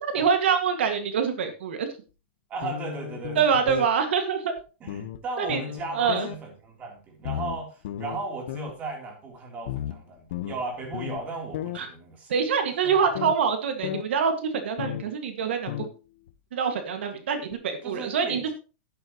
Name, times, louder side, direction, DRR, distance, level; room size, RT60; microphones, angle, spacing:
voice 1, 0.0-1.9 3.4-4.5 5.4-5.6 5.9-6.3 11.8-11.9 12.3-15.9 16.5-18.5, right 6 dB, 85° right, 6 dB, 2.0 m, -25 dB
voice 2, 2.5-3.6 4.8-12.3 12.8-12.9 17.8-18.5, right 3 dB, 25° right, 1 dB, 3.4 m, -36 dB
sound 1, 2.6-3.9 4.6-4.7 4.9-5.2 5.5-6.4 7.2-8.2 8.5-8.7 9.7-11.2 11.5-11.8 13.1-13.4 13.8-14.0 14.8-15.1 15.7-15.9 16.3-16.4 17.5-17.6, left 12 dB, 60° left, 1.1 m, -34 dB
11.5 x 11.0 x 3.1 m, 0.32 s
supercardioid pair, 160°, 6 cm